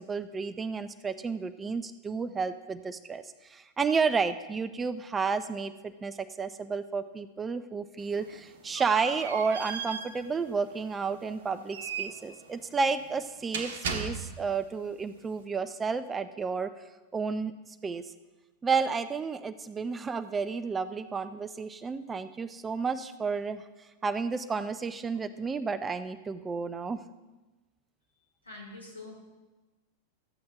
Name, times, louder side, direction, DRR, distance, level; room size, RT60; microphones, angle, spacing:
voice 1, 0.0-16.8 17.1-17.5 17.8-18.1 18.6-23.6 24.0-27.0, right 5 dB, 15° right, 12 dB, 0.4 m, -31 dB
sound 1, 8.0-14.6, right 5 dB, 60° right, 1.0 m, -38 dB
voice 2, 28.1-29.1, left 2 dB, 80° left, -3 dB, 3.4 m, -46 dB
13.5 x 8.5 x 3.6 m, 1.1 s
figure-of-eight pair, 90°, 0 cm